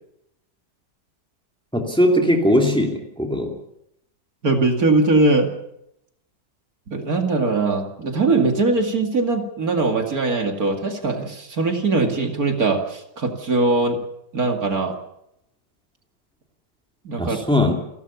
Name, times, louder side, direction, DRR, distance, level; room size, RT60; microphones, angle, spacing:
voice 1, 1.7-3.5 17.2-17.7, left 1 dB, 5° left, 2 dB, 2.7 m, -19 dB
voice 2, 4.4-5.5 6.9-14.0 14.3-14.9 17.0-17.4, right 3 dB, 55° right, 3 dB, 2.7 m, -21 dB
30.0 x 12.5 x 7.0 m, 0.80 s
omnidirectional pair, 1.8 m